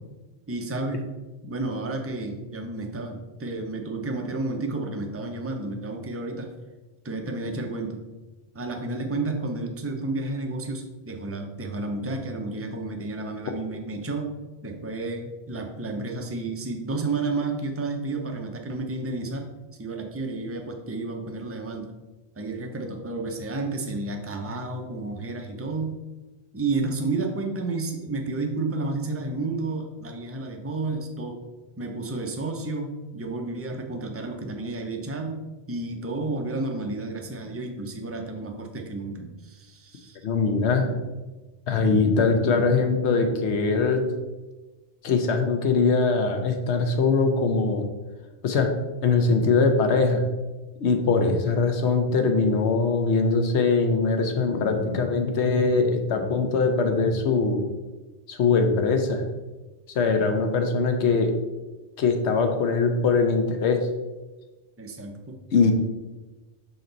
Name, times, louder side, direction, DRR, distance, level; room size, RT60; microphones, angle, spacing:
voice 1, 0.5-1.1 1.4-6.5 7.0-8.0 8.5-14.4 14.6-19.5 19.8-21.9 22.3-26.0 26.5-31.4 31.8-40.2 64.8-65.4, right 3 dB, 20° right, 3 dB, 0.4 m, -31 dB
voice 2, 40.2-41.0 41.7-44.1 45.0-47.8 48.4-48.7 49.0-50.2 50.8-57.6 58.3-59.2 59.9-61.3 62.0-63.8 65.5-65.7, left 4 dB, 70° left, 5 dB, 1.0 m, -22 dB
5.8 x 4.2 x 3.9 m, 1.2 s
omnidirectional pair, 1.2 m